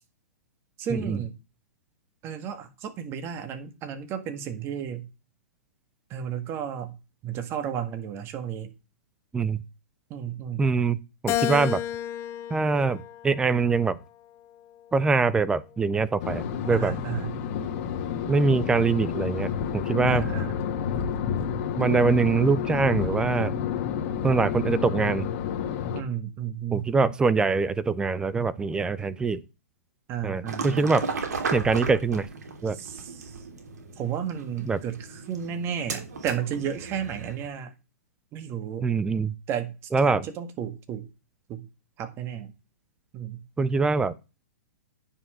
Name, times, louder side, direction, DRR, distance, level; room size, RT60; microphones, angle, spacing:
voice 1, 0.8-1.4 2.2-5.1 6.1-7.0 7.2-8.7 10.1-10.6 16.7-17.4 20.1-20.6 25.9-27.2 30.1-30.9 32.7-33.4 34.0-37.7 38.3-38.9 39.5-41.1 41.5-41.7 42.0-42.5 43.1-43.4, right 8 dB, 30° right, 1.7 m, -33 dB
voice 2, 10.6-11.8 12.5-14.0 14.9-17.0 18.3-20.3 21.8-23.5 24.2-25.3 26.7-29.4 30.2-31.0 31.5-32.3 32.6-32.8 34.7-34.8 38.8-39.3 39.9-40.3 43.6-44.1, right 4 dB, 10° right, 0.5 m, -24 dB
Keyboard (musical), 11.3-13.8 14.4-15.6, left 12 dB, 30° left, 0.7 m, -32 dB
sound 1, 16.2-26.0, left 7 dB, 45° left, 1.7 m, -30 dB
sound 2, 30.5-37.5, right 4 dB, 80° right, 3.1 m, -35 dB
9.7 x 5.6 x 6.2 m
hypercardioid pair, 140°, 9 cm